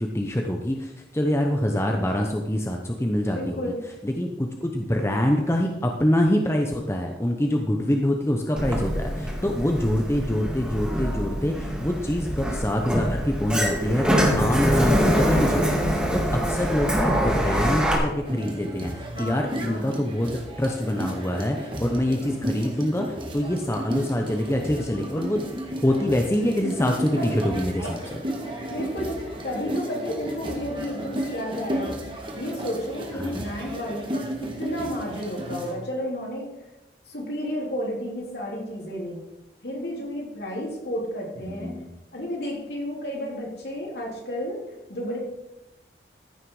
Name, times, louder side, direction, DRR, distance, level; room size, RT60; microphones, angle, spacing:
voice 1, 0.0-3.6 4.0-14.0 14.4-23.1 23.3-28.0 33.2-33.4 41.4-41.9, left 1 dB, 15° left, 2 dB, 0.8 m, -25 dB
voice 2, 3.3-3.8 17.0-17.4 19.1-20.0 28.7-32.0 32.4-36.5 37.1-39.2 39.6-41.7 42.1-44.6 44.9-45.2, equal, 65° left, -2 dB, 3.5 m, -32 dB
Sliding door, 8.6-18.0, equal, 5° right, 2.0 m, -24 dB
sound 1, 18.2-35.7, equal, 30° right, 1.8 m, -33 dB
14.5 x 6.5 x 4.9 m, 0.95 s
head